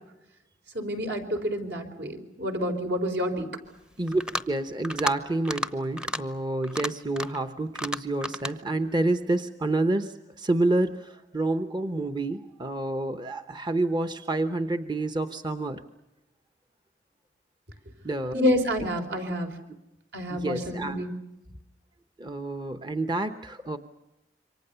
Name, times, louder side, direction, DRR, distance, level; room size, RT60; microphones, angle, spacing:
voice 1, 0.7-3.5 18.3-19.6 20.1-21.1, equal, 70° right, 4 dB, 4.3 m, -28 dB
sound 1, 4.1-4.5 4.8-5.2 5.4-5.7 6.0-6.2 6.6-7.4 7.8-8.5, left 1 dB, 5° right, 0.8 m, -32 dB
voice 2, 4.5-15.8 18.0-18.4 20.3-21.0 22.2-23.8, right 2 dB, 25° right, 9 dB, 0.9 m, -28 dB
27.5 x 24.5 x 6.9 m, 0.96 s
head